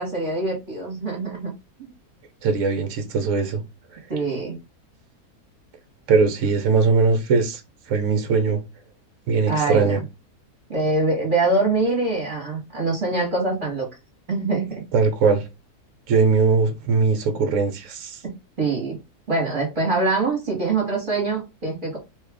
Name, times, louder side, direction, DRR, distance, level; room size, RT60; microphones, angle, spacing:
voice 1, 0.0-1.5 4.1-4.6 9.5-10.0 10.7-13.9 14.3-14.8 18.6-19.0 19.3-22.0, right 3 dB, 35° right, 1.2 m, -24 dB
voice 2, 2.4-3.6 3.9-4.0 6.1-7.6 7.9-8.6 9.3-10.0 14.9-15.5 16.1-18.2, right 4 dB, 65° right, 0.9 m, -20 dB
3.1 x 2.3 x 3.4 m
omnidirectional pair, 1.7 m